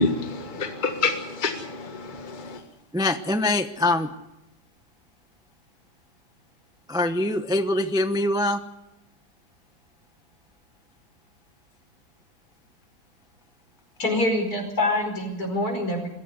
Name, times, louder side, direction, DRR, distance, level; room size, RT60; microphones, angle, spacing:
voice 1, 0.0-2.6, left 3 dB, 30° left, 5 dB, 1.8 m, -27 dB
voice 2, 2.9-4.1 6.9-8.6, left 1 dB, 5° right, 9 dB, 0.5 m, -23 dB
voice 3, 14.0-16.1, left 1 dB, 55° left, 4 dB, 5.5 m, -25 dB
22.5 x 15.5 x 9.8 m, 0.90 s
omnidirectional pair, 1.9 m